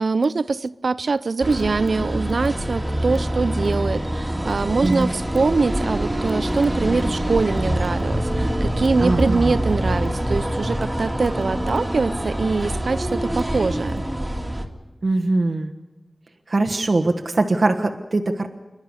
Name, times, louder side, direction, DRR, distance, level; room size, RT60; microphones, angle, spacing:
voice 1, 0.0-14.1, right 4 dB, 80° right, 0.6 m, -23 dB
sound 1, 1.4-14.7, right 1 dB, 15° right, 2.3 m, -25 dB
voice 2, 9.0-9.5 15.0-15.7 16.5-18.5, right 2 dB, 60° right, 1.2 m, -21 dB
28.0 x 11.5 x 9.8 m
wide cardioid pair, 75°, 0 cm